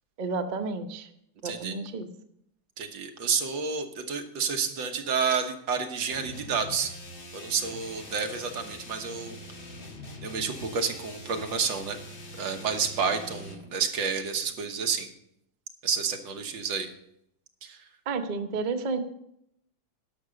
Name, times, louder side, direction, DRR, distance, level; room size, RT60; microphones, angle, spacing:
voice 1, 0.2-1.1 1.4-2.1 18.1-19.0, right 4 dB, 85° right, 7 dB, 0.4 m, -31 dB
voice 2, 1.4-1.7 2.8-6.9 7.3-9.4 10.2-12.0 12.4-15.1 15.8-16.9 17.6-17.8, right 6 dB, 70° right, 5 dB, 1.8 m, -30 dB
sound 1, 6.1-13.7, left 1 dB, 30° left, 1.3 m, -43 dB
11.5 x 6.1 x 6.7 m, 0.75 s
omnidirectional pair, 2.2 m